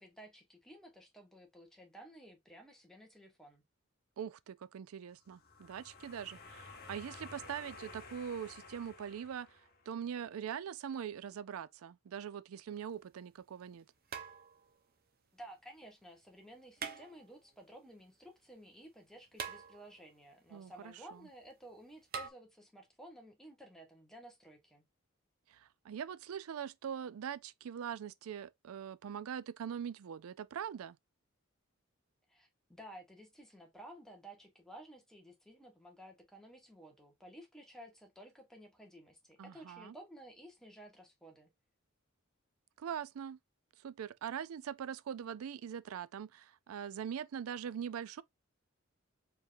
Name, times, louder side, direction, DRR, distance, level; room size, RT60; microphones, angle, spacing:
voice 1, 0.0-3.6 15.3-24.8 32.3-41.5, right 1 dB, ahead, 1.2 m, -54 dB
voice 2, 4.2-9.6 9.9-13.9 20.5-21.2 25.5-31.0 39.4-40.0 42.8-43.4 43.8-48.2, right 8 dB, 90° right, 0.4 m, -42 dB
sound 1, 5.2-10.0, left 3 dB, 50° left, 1.1 m, -53 dB
sound 2, 12.7-12.8 14.1-14.8 16.8-17.5 19.4-20.2 22.1-22.3, right 6 dB, 45° right, 0.8 m, -44 dB
4.6 x 3.5 x 2.5 m
head